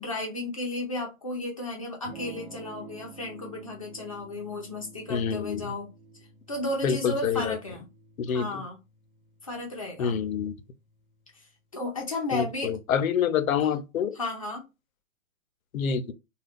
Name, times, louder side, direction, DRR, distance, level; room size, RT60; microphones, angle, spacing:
voice 1, 0.0-5.9 6.5-7.9 8.3-8.8 9.4-10.2 11.7-12.8 13.6-13.7 14.1-14.7, left 2 dB, 25° left, 0.5 m, -33 dB
Electric guitar / Strum, 2.0-11.8, right 5 dB, 40° right, 0.8 m, -51 dB
voice 2, 5.1-5.7 6.8-7.6 8.2-8.6 10.0-10.5 12.3-14.1 15.7-16.1, left 7 dB, 75° left, 0.6 m, -27 dB
2.4 x 2.3 x 3.4 m
hypercardioid pair, 165°, 41 cm